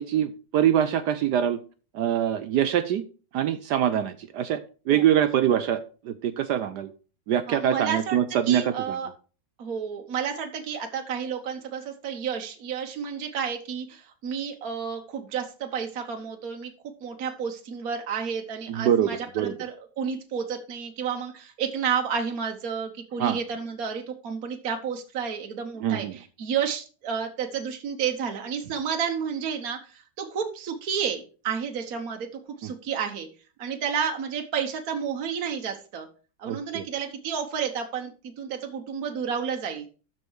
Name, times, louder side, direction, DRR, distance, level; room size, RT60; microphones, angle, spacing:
voice 1, 0.0-1.6 1.9-3.0 3.3-6.9 7.3-9.0 18.7-19.5 23.2-23.4 25.8-26.2 32.6-32.7 36.4-36.8, right 10 dB, 70° right, 11 dB, 1.1 m, -24 dB
voice 2, 7.5-9.1 9.6-16.7 17.0-32.3 32.6-33.3 33.6-36.1 36.4-39.9, right 7 dB, 55° right, 3 dB, 1.4 m, -31 dB
13.0 x 4.4 x 4.7 m, 0.37 s
omnidirectional pair, 2.1 m